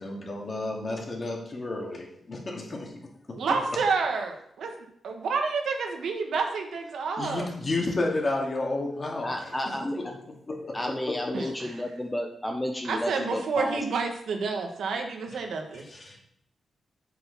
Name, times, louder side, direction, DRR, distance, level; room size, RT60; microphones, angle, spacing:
voice 1, 0.0-3.4 7.2-10.1 10.5-11.2 15.9-16.2, left 2 dB, 40° left, -1 dB, 2.5 m, -32 dB
voice 2, 3.3-7.5 11.3-11.8 12.8-15.8, right 4 dB, 80° right, 3 dB, 1.6 m, -29 dB
voice 3, 9.2-10.0 10.7-13.8, left 1 dB, 10° left, 2 dB, 1.0 m, -32 dB
7.8 x 6.9 x 5.8 m, 0.70 s
cardioid pair, 95°, 0 cm